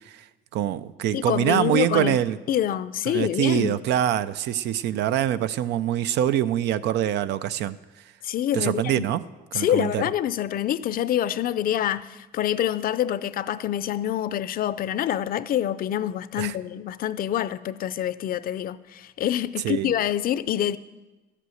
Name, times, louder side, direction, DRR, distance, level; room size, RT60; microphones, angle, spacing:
voice 1, 0.5-2.4 3.1-7.8 8.5-9.2 9.5-10.0 16.4-16.6 19.6-19.9, right 11 dB, 80° right, 0.5 m, -24 dB
voice 2, 1.1-2.2 2.5-3.7 8.2-9.0 9.5-20.8, left 11 dB, 55° left, 0.5 m, -26 dB
12.5 x 8.4 x 7.8 m
cardioid pair, 110°, 17 cm